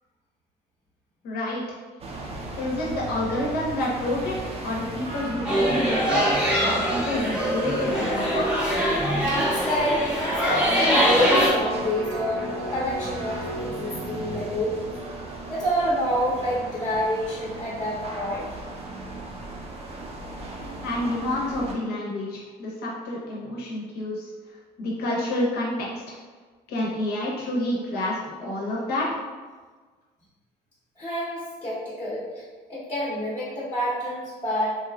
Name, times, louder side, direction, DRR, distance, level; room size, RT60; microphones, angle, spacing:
voice 1, 1.2-1.8 2.6-6.0 6.6-8.5 20.8-26.2 26.7-29.1, left 1 dB, 70° left, -4 dB, 0.9 m, -29 dB
sound 1, 2.0-21.7, right 2 dB, 35° right, 0.5 m, -38 dB
sound 2, 5.4-11.5, equal, 5° right, 0.7 m, -23 dB
voice 2, 9.2-14.9 15.5-18.5 31.0-32.4 32.7-34.8, equal, 30° left, -7 dB, 0.8 m, -28 dB
Electric guitar, 10.8-17.0 17.4-17.5, equal, 75° right, 0.8 m, -37 dB
3.0 x 2.3 x 2.2 m, 1.4 s
cardioid pair, 110°, 17 cm